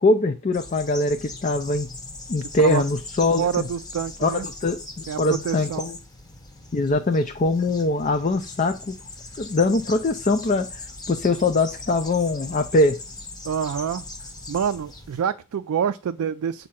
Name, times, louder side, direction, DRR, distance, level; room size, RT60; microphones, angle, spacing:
voice 1, 0.0-1.9 2.3-3.7 4.2-6.0 6.7-8.9 9.4-10.8 11.1-13.0, left 2 dB, 35° left, 0.4 m, -22 dB
sound 1, 0.5-15.2, left 2 dB, 20° left, 0.8 m, -40 dB
voice 2, 3.4-4.5 5.1-5.9 13.4-14.0 14.5-16.7, right 7 dB, 85° right, 0.3 m, -27 dB
7.4 x 2.7 x 5.7 m
head